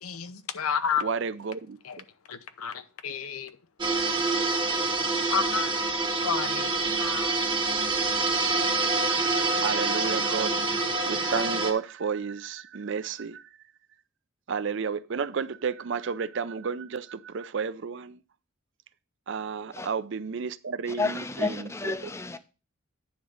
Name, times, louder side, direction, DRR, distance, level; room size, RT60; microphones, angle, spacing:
voice 1, 0.0-1.1 1.8-2.0 2.3-3.5 5.3-5.7 6.2-7.3, left 6 dB, 85° left, 0.7 m, -31 dB
voice 2, 1.0-1.8 9.6-10.6 11.1-13.4 14.5-18.1 19.3-21.9, right 6 dB, 55° right, 0.4 m, -31 dB
sound 1, 3.8-11.7, right 3 dB, 20° right, 0.9 m, -26 dB
voice 3, 20.9-22.4, left 3 dB, 10° left, 0.5 m, -31 dB
9.5 x 3.7 x 6.3 m
head